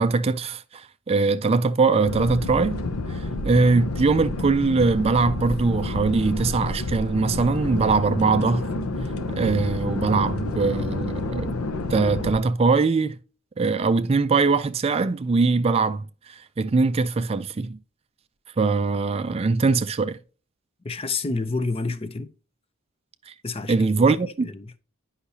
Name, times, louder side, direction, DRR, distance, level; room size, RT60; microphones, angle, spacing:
voice 1, 0.0-2.8 3.1-8.6 9.3-11.6 11.9-13.2 13.6-17.8 18.6-20.2 23.3-23.4 23.7-24.5, right 4 dB, 30° right, 0.3 m, -22 dB
sound 1, 2.0-12.4, left 2 dB, 85° left, 0.8 m, -29 dB
voice 2, 20.8-22.3 23.4-24.8, left 3 dB, 25° left, 0.5 m, -29 dB
9.9 x 5.6 x 2.7 m
head